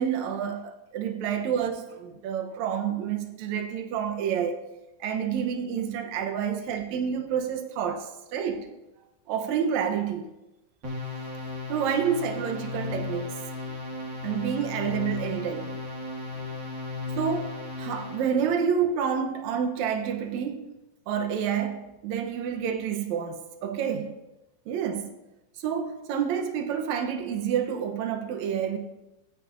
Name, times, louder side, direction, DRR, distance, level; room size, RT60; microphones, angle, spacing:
voice 1, 0.0-4.6 5.0-8.7 9.3-10.3 11.7-13.4 13.7-13.8 14.2-15.8 17.2-20.7 21.1-24.1 24.7-25.1 25.6-28.8, right 7 dB, 75° right, 2.2 m, -29 dB
sound 1, 10.8-18.4, left 3 dB, 40° right, 2.3 m, -35 dB
15.5 x 9.1 x 2.6 m
omnidirectional pair, 3.4 m